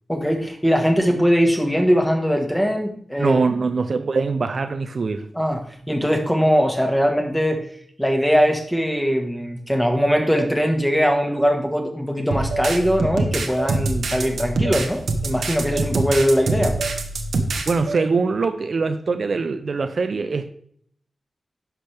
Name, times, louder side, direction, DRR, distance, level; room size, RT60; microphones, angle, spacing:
voice 1, 0.1-3.4 5.3-7.6 8.0-16.7, equal, 5° left, 3 dB, 1.5 m, -21 dB
voice 2, 3.2-5.3 17.7-20.5, right 4 dB, 60° right, 9 dB, 0.5 m, -23 dB
sound 1, 10.4-10.5 11.4-11.6 12.5-12.7 13.6-13.7 14.7-14.8 15.7-15.9 16.8-17.0 17.9-18.0, right 3 dB, 75° right, 1.7 m, -29 dB
sound 2, 12.3-17.7, right 3 dB, 90° right, 1.1 m, -25 dB
10.5 x 6.0 x 3.4 m, 0.63 s
wide cardioid pair, 95°, 0 cm